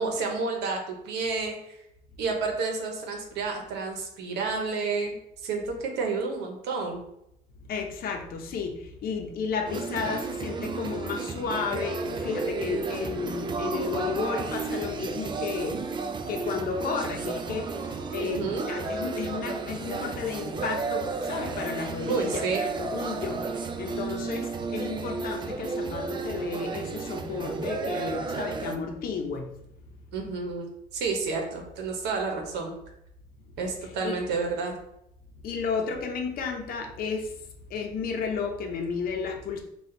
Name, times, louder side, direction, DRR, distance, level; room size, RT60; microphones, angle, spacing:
voice 1, 0.0-1.8 2.2-5.2 5.4-7.0 18.2-18.6 22.1-22.6 30.1-30.7 30.9-32.7 33.6-34.8, right 4 dB, 80° right, 2 dB, 0.9 m, -30 dB
voice 2, 7.6-29.5 34.0-34.2 35.4-37.3 37.7-39.6, left 5 dB, 60° left, 3 dB, 0.7 m, -33 dB
sound 1, 9.7-28.8, right 4 dB, 30° right, 0.4 m, -33 dB
4.2 x 2.4 x 3.8 m, 0.79 s
cardioid pair, 110°, 17 cm